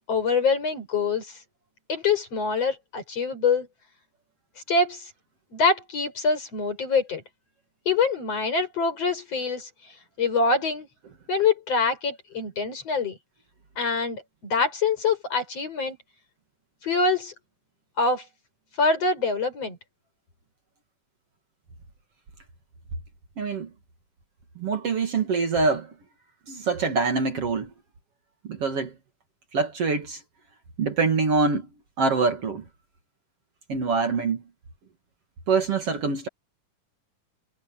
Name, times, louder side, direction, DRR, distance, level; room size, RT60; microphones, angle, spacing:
voice 1, 0.1-1.3 1.9-3.7 4.7-5.1 5.5-7.2 7.9-9.7 10.2-10.9 11.3-13.2 13.8-16.0 16.8-17.3 18.0-18.2 18.8-19.8, left 4 dB, 50° left, 6.5 m, -25 dB
voice 2, 23.4-23.7 24.6-25.9 26.5-27.7 28.4-28.9 29.5-30.2 30.8-31.7 32.0-32.6 33.7-34.4 35.5-36.3, right 4 dB, 50° right, 2.8 m, -24 dB
omnidirectional pair, 3.7 m